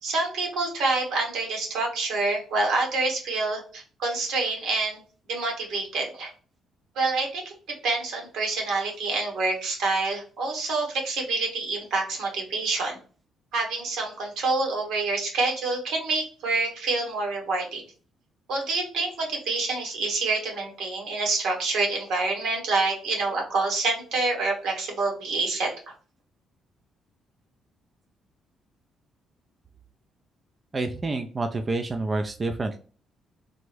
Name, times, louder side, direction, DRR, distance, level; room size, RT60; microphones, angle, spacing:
voice 1, 0.0-5.0 5.3-6.3 6.9-7.5 7.8-13.0 13.5-17.8 18.5-25.7, right 3 dB, 85° right, 0 dB, 1.2 m, -27 dB
voice 2, 30.7-32.8, right 3 dB, 30° right, 6 dB, 0.3 m, -28 dB
3.4 x 2.0 x 3.1 m, 0.39 s
cardioid pair, 90°, 0 cm